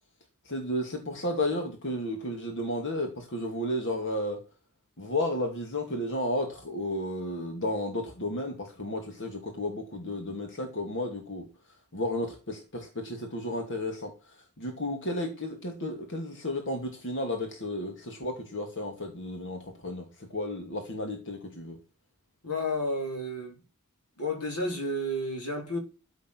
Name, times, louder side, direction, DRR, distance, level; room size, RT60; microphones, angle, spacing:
voice 1, 0.4-4.4 5.0-11.4 11.9-21.8, left 1 dB, 55° left, 2.4 m, -33 dB
voice 2, 22.4-23.6 24.2-25.8, left 1 dB, 80° left, 4.3 m, -31 dB
13.5 x 7.1 x 6.3 m
head